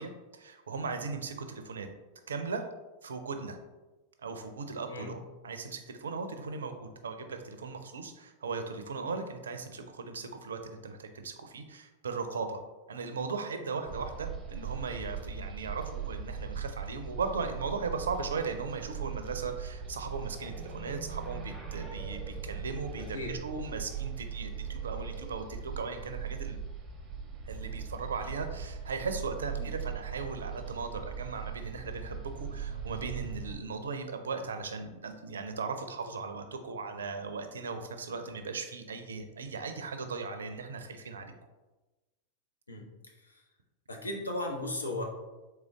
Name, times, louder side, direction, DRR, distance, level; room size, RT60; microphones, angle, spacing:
voice 1, 0.0-1.9 2.3-2.6 3.0-3.6 4.2-12.6 12.9-26.6 27.4-41.3, right 4 dB, 65° right, 7 dB, 0.4 m, -38 dB
voice 2, 4.9-5.2 23.1-23.4 29.6-29.7 42.7-42.9 43.2-43.4 43.9-45.0, left 2 dB, 75° left, 1 dB, 0.7 m, -36 dB
sound 1, 13.9-33.6, right 6 dB, 20° right, 0.6 m, -40 dB
3.7 x 3.2 x 3.5 m, 1.1 s
figure-of-eight pair, 90°, 0 cm